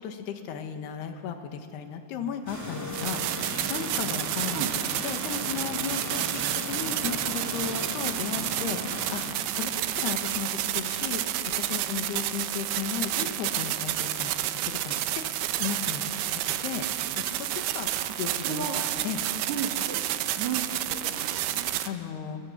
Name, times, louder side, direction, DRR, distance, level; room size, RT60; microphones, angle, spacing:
voice 1, 0.0-4.6 5.0-14.3 14.6-15.2 15.6-16.9 17.2-17.9 18.2-18.7 19.0-19.2 21.8-22.4, left 8 dB, 85° left, 6 dB, 3.4 m, -35 dB
sound 1, 2.5-9.3, equal, 25° right, 0.3 m, -37 dB
sound 2, 2.9-21.9, right 13 dB, 80° right, 2.8 m, -30 dB
voice 2, 18.4-18.8 19.5-20.0 20.4-21.8, right 6 dB, 60° right, 2 dB, 2.2 m, -34 dB
24.0 x 20.5 x 7.3 m, 2.8 s
omnidirectional pair, 4.6 m